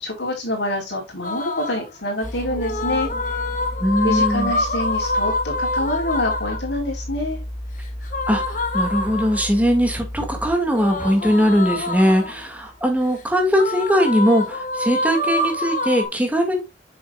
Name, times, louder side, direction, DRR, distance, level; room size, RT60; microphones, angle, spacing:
voice 1, 0.0-3.1 4.0-7.4, left 1 dB, 70° left, 4.2 m, -26 dB
sound 1, 1.2-1.9 2.5-6.7 8.1-9.6 10.7-12.4 13.5-16.1, left 2 dB, 45° left, 1.6 m, -26 dB
sound 2, 2.2-13.6 13.9-14.2, equal, 10° left, 1.0 m, -34 dB
voice 2, 3.8-4.5 8.3-16.6, equal, 10° right, 2.0 m, -20 dB
8.5 x 6.7 x 2.4 m
head